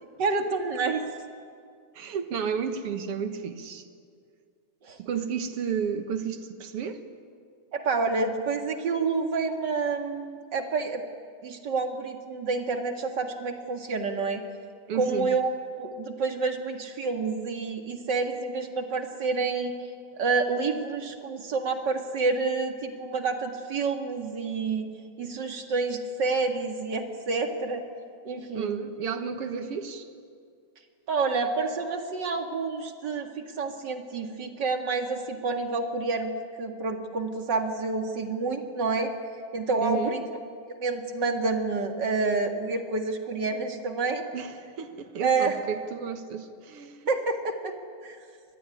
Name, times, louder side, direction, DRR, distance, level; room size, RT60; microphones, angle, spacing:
voice 1, 0.2-1.0 4.8-5.0 7.7-11.0 11.4-14.4 14.9-19.7 20.2-24.9 25.2-27.8 28.2-28.8 31.1-36.3 36.6-39.1 39.5-40.2 40.7-44.2 45.2-45.6 47.1-47.7 48.0-48.2, right 4 dB, 40° right, 5 dB, 2.2 m, -28 dB
voice 2, 2.0-3.9 5.0-7.0 14.9-15.3 28.5-30.1 39.8-40.1 44.3-47.0, right 7 dB, 55° right, 8 dB, 2.1 m, -32 dB
25.5 x 20.5 x 9.9 m, 2.2 s
omnidirectional pair, 3.5 m